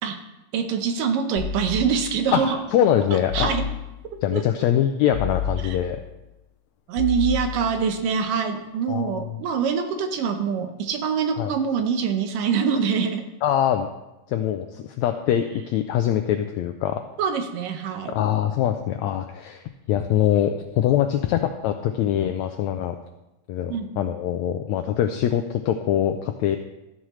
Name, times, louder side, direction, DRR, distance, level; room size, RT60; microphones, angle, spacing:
voice 1, 0.5-2.6 3.1-3.6 4.3-4.4 5.6-5.8 6.9-13.3 17.2-18.1 23.7-24.0, right 6 dB, 80° right, 6 dB, 2.7 m, -25 dB
sound 1, 1.4-2.4 3.3-4.2 5.1-6.2 7.0-8.0, left 6 dB, 65° left, 2.3 m, -31 dB
voice 2, 2.3-3.6 4.2-6.0 8.9-9.1 11.4-11.5 13.4-13.9 14.3-17.0 18.1-19.6 19.9-23.0 23.5-26.6, left 10 dB, 85° left, 6 dB, 1.6 m, -23 dB
13.5 x 11.0 x 3.2 m, 0.98 s
omnidirectional pair, 3.8 m